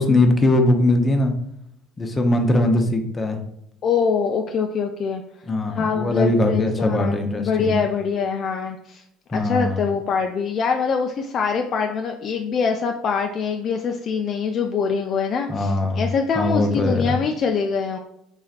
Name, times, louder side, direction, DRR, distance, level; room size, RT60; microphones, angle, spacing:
voice 1, 0.0-1.3 2.0-3.4 5.5-7.8 9.3-9.9 15.5-16.1 16.4-17.2, left 2 dB, 25° left, 4 dB, 0.7 m, -20 dB
voice 2, 3.8-5.2 5.7-9.0 9.3-18.0, left 5 dB, 50° left, 4 dB, 0.3 m, -24 dB
3.8 x 3.1 x 2.4 m, 0.76 s
hypercardioid pair, 80°, 0 cm